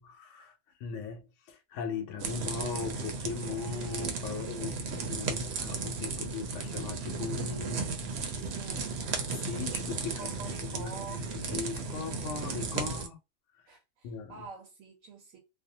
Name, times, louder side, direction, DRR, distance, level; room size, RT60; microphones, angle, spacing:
voice 1, 0.0-7.8 8.2-8.5 9.5-13.2 13.5-13.8 14.0-14.3, left 5 dB, 70° left, 0.9 m, -39 dB
sound 1, 2.2-13.1, right 4 dB, 65° right, 0.8 m, -35 dB
voice 2, 4.3-5.0 8.4-9.1 10.1-11.3 13.7-15.4, right 5 dB, 85° right, 1.1 m, -47 dB
2.5 x 2.1 x 2.7 m
omnidirectional pair, 1.4 m